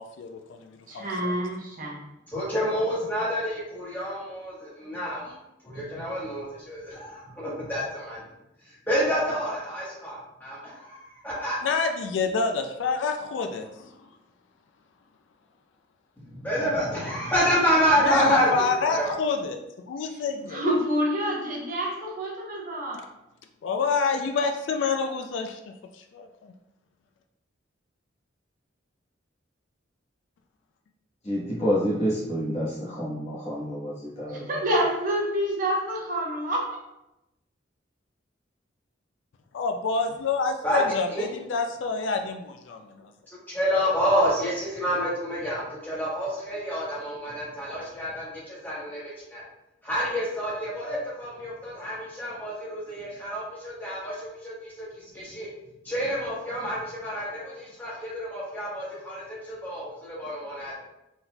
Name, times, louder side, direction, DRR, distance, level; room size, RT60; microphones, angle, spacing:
voice 1, 0.0-1.3 11.6-14.0 18.0-20.6 23.6-25.6 25.9-26.5 39.5-43.1, left 4 dB, 75° left, 5 dB, 0.3 m, -28 dB
voice 2, 0.9-2.0 20.1-20.2 20.5-23.0 34.5-36.7, equal, 45° right, -2 dB, 0.9 m, -27 dB
voice 3, 2.3-5.3 5.6-8.2 8.8-11.6 16.3-19.1 40.6-41.3 43.3-49.4 49.8-55.5 55.8-60.7, equal, 10° left, -7 dB, 1.3 m, -28 dB
voice 4, 31.2-33.9 34.2-34.4, equal, 35° left, -6 dB, 1.2 m, -28 dB
4.0 x 3.9 x 2.3 m, 0.89 s
head